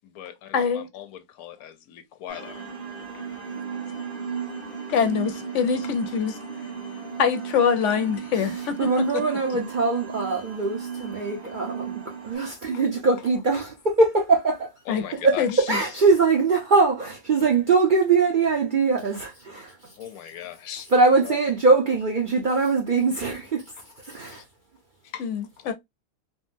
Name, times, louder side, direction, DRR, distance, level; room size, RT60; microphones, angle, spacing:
voice 1, 0.0-2.6 3.1-3.3 4.9-5.0 5.8-5.9 6.3-7.1 11.6-11.7 12.3-12.5 12.7-12.8 13.5-13.6 14.9-15.7 20.0-20.9 21.2-21.4 24.3-24.4 25.0-25.3 25.6-25.7, left 11 dB, 85° left, 1.1 m, -40 dB
voice 2, 0.5-0.9 4.9-6.3 7.2-8.8 14.9-15.0 15.4-15.5 25.2-25.7, left 7 dB, 65° left, 0.8 m, -24 dB
sound 1, 2.3-12.4, right 6 dB, 30° right, 1.5 m, -35 dB
voice 3, 8.3-14.7 15.2-20.0 20.9-24.4, right 4 dB, 50° right, 0.6 m, -22 dB
3.7 x 2.0 x 2.5 m
omnidirectional pair, 1.5 m